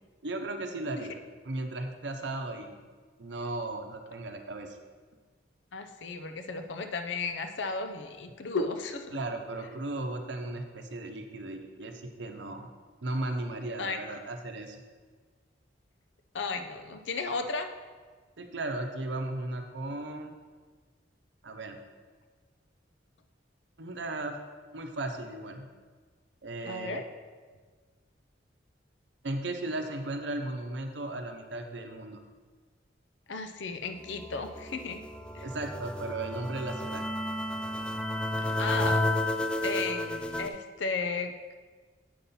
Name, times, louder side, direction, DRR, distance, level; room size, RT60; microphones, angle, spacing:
voice 1, 0.2-1.2 1.4-2.8 3.2-4.8 9.1-12.7 13.0-14.8 18.4-20.3 21.4-21.8 23.8-24.4 24.7-25.7 26.4-27.0 29.2-32.2 35.4-37.0, right 2 dB, 75° right, 5 dB, 0.8 m, -36 dB
voice 2, 5.7-9.2 9.6-9.7 13.8-14.0 16.3-17.7 26.7-27.0 33.3-35.0 35.3-35.5 38.6-39.0 39.6-41.5, left 4 dB, 85° left, 7 dB, 0.6 m, -34 dB
sound 1, 34.0-40.5, left 1 dB, 5° left, 0.3 m, -32 dB
7.5 x 5.5 x 4.2 m, 1.5 s
head